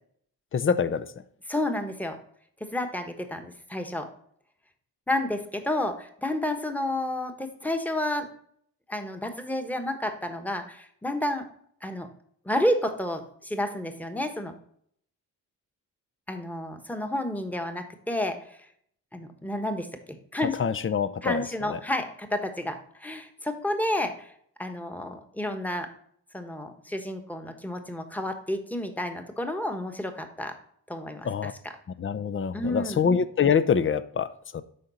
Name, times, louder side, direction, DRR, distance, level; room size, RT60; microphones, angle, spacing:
voice 1, 0.5-1.1 20.6-21.4 21.7-21.8 31.3-31.5 32.0-34.6, left 6 dB, 30° left, 15 dB, 0.6 m, -25 dB
voice 2, 1.5-2.2 2.6-4.1 5.1-8.3 8.9-11.5 11.8-12.1 12.4-14.5 16.3-18.6 19.1-20.6 21.2-24.3 24.6-25.9 26.3-30.6 30.9-31.8 32.5-33.0, left 1 dB, 5° left, 6 dB, 1.2 m, -30 dB
10.5 x 3.9 x 4.0 m, 0.66 s
supercardioid pair, 60°, 41 cm